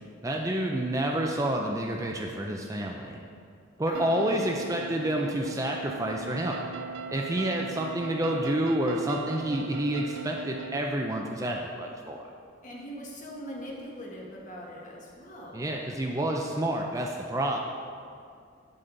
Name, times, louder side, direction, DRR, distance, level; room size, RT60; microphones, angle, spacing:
voice 1, 0.2-3.2 3.8-6.6 7.1-12.2 15.5-17.6, right 1 dB, 15° right, 1 dB, 0.5 m, -29 dB
voice 2, 3.9-4.3 12.6-15.7, equal, 40° left, -3 dB, 1.5 m, -41 dB
sound 1, 3.9-10.8, right 5 dB, 80° right, 0.3 m, -39 dB
9.0 x 7.8 x 3.9 m, 2.3 s
head